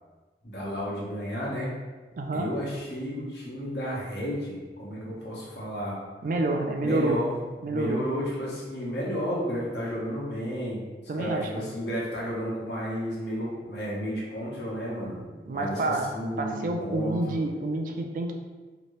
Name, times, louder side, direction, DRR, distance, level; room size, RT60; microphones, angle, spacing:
voice 1, 0.4-1.7 2.3-6.0 6.8-7.3 7.6-10.8 11.1-17.2, equal, 75° left, -6 dB, 1.0 m, -32 dB
voice 2, 2.2-2.5 6.2-7.2 7.6-8.0 11.1-11.7 15.5-16.1 16.4-18.3, right 2 dB, 45° right, 3 dB, 0.3 m, -28 dB
2.9 x 2.6 x 3.1 m, 1.3 s
head